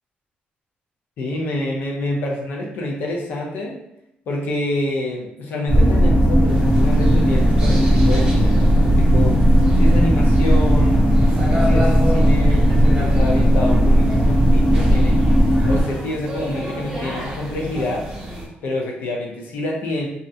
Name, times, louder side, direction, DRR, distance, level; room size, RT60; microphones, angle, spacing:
voice 1, 1.2-3.8 4.3-9.4 9.8-11.1 11.5-15.2 15.7-18.1 18.6-20.1, left 1 dB, 65° left, -1 dB, 0.6 m, -27 dB
sound 1, 5.7-15.8, equal, 35° left, 0.7 m, -15 dB
sound 2, 6.5-18.5, equal, 20° right, 0.6 m, -31 dB
2.4 x 2.1 x 2.6 m, 0.81 s
cardioid pair, 175°, 4 cm